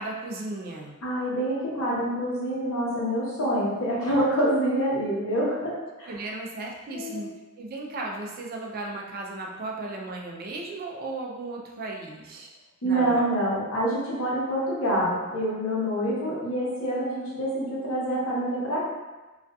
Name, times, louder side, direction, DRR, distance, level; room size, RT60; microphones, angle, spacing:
voice 1, 0.0-1.0 6.1-12.5 12.8-13.3 17.8-17.9, right 2 dB, 45° right, -1 dB, 0.3 m, -35 dB
voice 2, 1.0-6.1 6.9-7.2 12.8-18.9, right 1 dB, 75° left, -7 dB, 0.9 m, -26 dB
2.5 x 2.4 x 2.2 m, 1.2 s
head